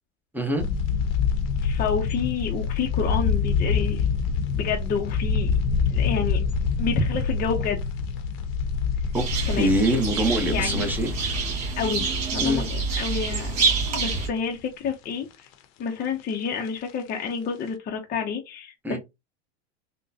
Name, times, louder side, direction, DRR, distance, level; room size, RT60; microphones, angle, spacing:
voice 1, 0.3-0.6 9.1-9.3 9.6-11.1 12.4-12.6 18.8-19.0, right 1 dB, 5° right, 0.7 m, -24 dB
sound 1, 0.6-14.6 15.0-15.1 15.3-15.5 16.5-16.9 17.3-17.4 17.7-17.8, left 5 dB, 65° left, 0.8 m, -27 dB
voice 2, 1.6-4.1 4.5-5.5 5.9-6.4 6.8-7.8 9.5-9.7 10.5-10.9 11.8-15.3 15.8-19.0, left 6 dB, 30° left, 0.6 m, -29 dB
sound 2, 9.1-14.3, right 4 dB, 55° right, 1.7 m, -27 dB
3.6 x 2.2 x 2.7 m
supercardioid pair, 115°, 33 cm